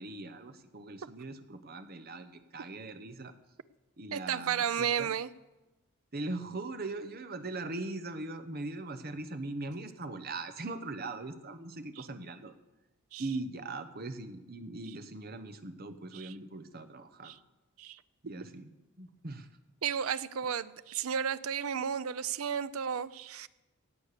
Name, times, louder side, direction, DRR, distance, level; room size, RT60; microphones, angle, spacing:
voice 1, 0.0-3.3 4.0-5.1 6.1-12.5 13.2-17.3 18.2-18.7 19.0-19.5, right 2 dB, 45° right, 9 dB, 1.0 m, -40 dB
voice 2, 4.1-5.3 12.0-12.1 13.1-13.3 16.1-16.3 17.2-17.4 17.8-18.0 19.8-23.5, right 8 dB, 75° right, 16 dB, 0.5 m, -33 dB
17.0 x 8.4 x 6.8 m, 1.1 s
head